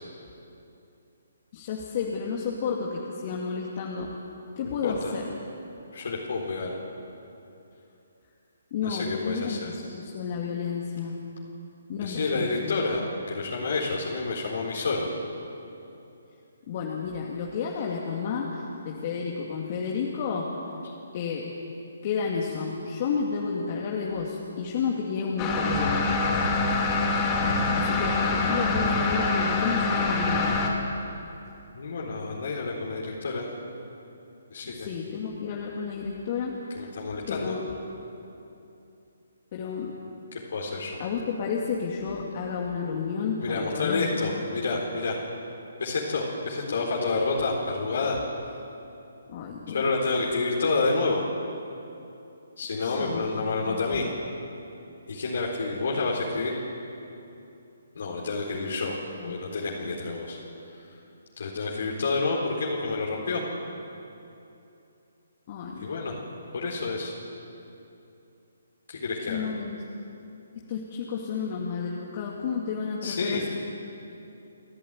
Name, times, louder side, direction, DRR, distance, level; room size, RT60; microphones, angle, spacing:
voice 1, 1.5-4.1 4.6-5.3 8.7-11.2 11.9-12.7 16.7-20.5 21.1-21.5 22.0-26.2 27.7-30.6 34.7-36.6 37.3-37.6 39.5-40.0 41.0-44.3 46.8-47.3 49.3-49.9 52.8-53.3 53.7-54.1 59.1-59.4 65.5-65.9 69.3-69.8 70.7-73.5, left 5 dB, 40° left, -2 dB, 2.4 m, -31 dB
voice 2, 4.6-5.1 5.9-6.7 8.8-9.7 12.0-13.0 13.3-15.1 31.7-33.4 34.5-34.9 36.7-37.5 40.3-41.0 43.4-45.2 45.8-48.2 49.7-51.2 52.6-54.1 55.1-56.5 57.9-58.9 59.2-60.4 60.8-60.9 61.4-63.4 65.7-66.1 66.5-67.1 68.9-69.5 73.0-73.4, left 3 dB, 65° left, -3 dB, 4.1 m, -29 dB
sound 1, 25.4-30.7, left 3 dB, 25° left, 3.5 m, -25 dB
29.5 x 11.0 x 9.1 m, 2.8 s
figure-of-eight pair, 145°, 0 cm